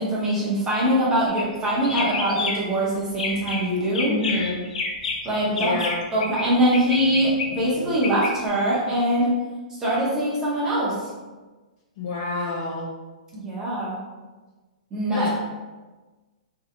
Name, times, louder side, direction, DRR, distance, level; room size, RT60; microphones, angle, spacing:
voice 1, 0.0-4.1 5.2-5.7 6.1-9.3 9.8-11.0 13.3-14.0 14.9-15.3, right 1 dB, 10° right, -7 dB, 0.6 m, -23 dB
sound 1, 1.3-1.5 1.8-2.8 3.1-3.6 3.9-6.4 6.7-8.3, left 4 dB, 75° left, 0.6 m, -29 dB
voice 2, 4.0-4.6 5.5-6.0 12.0-12.9 15.1-15.4, left 3 dB, 30° left, -3 dB, 0.4 m, -28 dB
3.0 x 2.7 x 2.5 m, 1.2 s
hypercardioid pair, 175°, 4 cm